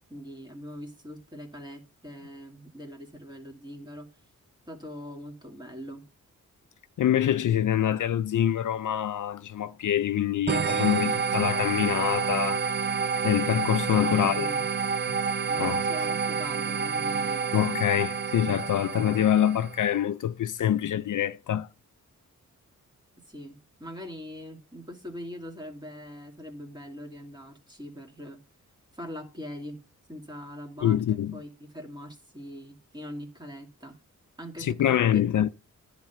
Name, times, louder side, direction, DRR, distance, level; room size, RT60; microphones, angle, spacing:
voice 1, 0.1-4.1 4.7-6.0 13.9-14.6 15.5-17.5 23.2-28.4 28.9-29.8 30.1-34.0 34.4-35.3, equal, 15° right, 2.3 m, -42 dB
voice 2, 7.0-12.6 13.2-14.5 15.1-15.2 15.6-15.8 17.5-21.7 30.8-31.4 34.6-35.5, left 10 dB, 70° left, 0.5 m, -25 dB
sound 1, 10.5-19.8, right 5 dB, 35° right, 0.5 m, -28 dB
10.5 x 3.8 x 5.7 m
cardioid pair, 75°, 32 cm